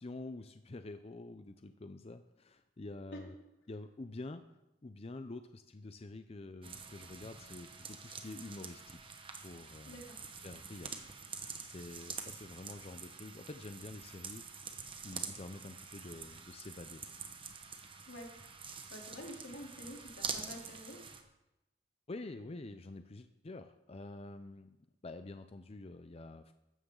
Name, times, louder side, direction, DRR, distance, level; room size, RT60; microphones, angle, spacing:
voice 1, 0.0-3.4 3.7-4.4 4.8-9.1 9.4-10.0 10.4-11.0 11.6-14.4 15.0-17.0 22.1-24.8 25.0-26.5, left 2 dB, 35° left, 9 dB, 0.5 m, -47 dB
sound 1, 6.6-21.2, right 5 dB, 30° right, 1.2 m, -46 dB
voice 2, 9.9-10.2 18.1-18.3 18.9-21.1, equal, 85° left, -1 dB, 3.4 m, -48 dB
15.5 x 13.0 x 3.9 m, 0.93 s
head